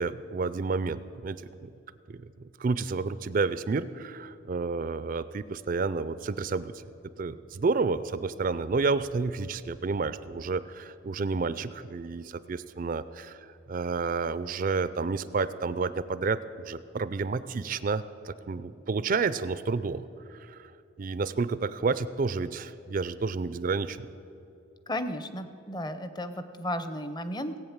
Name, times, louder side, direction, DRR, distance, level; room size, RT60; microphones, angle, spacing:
voice 1, 0.0-1.7 2.1-2.2 2.6-6.8 7.2-20.7 21.0-24.1, right 4 dB, 40° right, 15 dB, 0.4 m, -30 dB
voice 2, 24.9-27.6, left 1 dB, 20° left, 10 dB, 0.6 m, -34 dB
18.0 x 8.5 x 7.2 m, 2.8 s
head